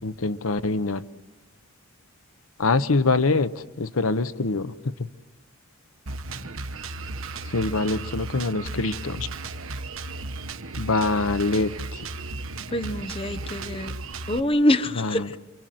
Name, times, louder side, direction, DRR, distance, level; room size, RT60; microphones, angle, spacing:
voice 1, 0.0-1.0 2.6-3.5 3.8-4.7 7.5-9.3 10.8-11.7 15.0-15.3, left 3 dB, 90° left, 0.9 m, -24 dB
Drum kit, 6.1-14.4, right 3 dB, 75° right, 1.3 m, -35 dB
voice 2, 12.7-13.9 14.3-15.4, left 1 dB, 25° left, 0.9 m, -24 dB
28.5 x 25.0 x 7.8 m
head